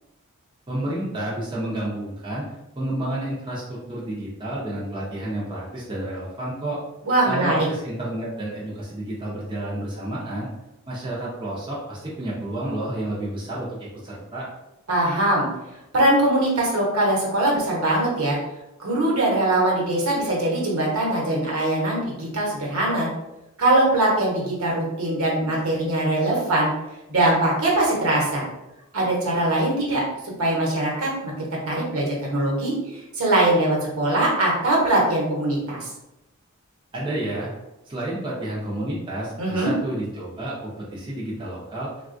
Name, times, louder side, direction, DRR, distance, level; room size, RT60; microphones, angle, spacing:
voice 1, 0.7-6.8 7.3-10.5 10.9-14.5 36.9-37.5 37.9-41.9, right 1 dB, 20° right, -7 dB, 0.6 m, -30 dB
voice 2, 7.0-7.7 14.9-15.5 15.9-18.4 18.8-23.1 23.6-26.7 27.1-28.4 28.9-30.0 30.4-35.9 39.4-39.7, right 1 dB, 65° right, -3 dB, 1.0 m, -22 dB
3.5 x 2.3 x 2.5 m, 0.94 s
head